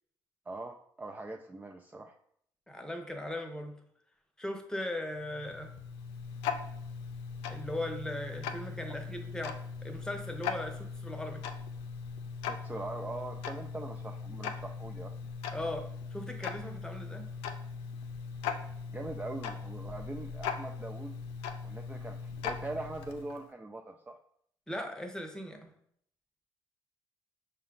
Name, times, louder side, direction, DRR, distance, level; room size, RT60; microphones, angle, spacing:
voice 1, 0.5-2.1 12.5-15.1 18.9-21.2 21.6-24.2, right 2 dB, 20° right, 3 dB, 0.4 m, -42 dB
voice 2, 2.7-3.8 4.4-5.7 7.5-11.4 15.5-15.8 16.1-17.3 24.7-25.7, left 1 dB, 5° left, 4 dB, 0.8 m, -38 dB
Tick-tock, 5.1-23.5, left 6 dB, 90° left, 0.4 m, -40 dB
5.5 x 2.2 x 3.8 m, 0.66 s
supercardioid pair, 60°, 9 cm